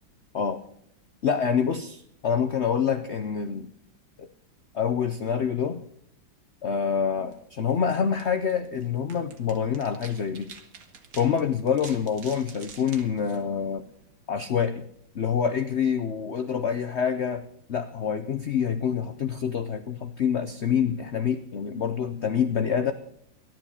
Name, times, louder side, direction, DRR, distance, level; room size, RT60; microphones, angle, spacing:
voice 1, 1.2-3.7 4.2-4.3 4.7-5.8 6.6-10.5 11.2-13.9 14.3-14.9 15.1-22.9, left 7 dB, 80° left, 9 dB, 0.6 m, -26 dB
sound 1, 7.2-14.2, right 5 dB, 60° right, 1.9 m, -49 dB
13.5 x 10.5 x 7.0 m, 0.69 s
omnidirectional pair, 2.1 m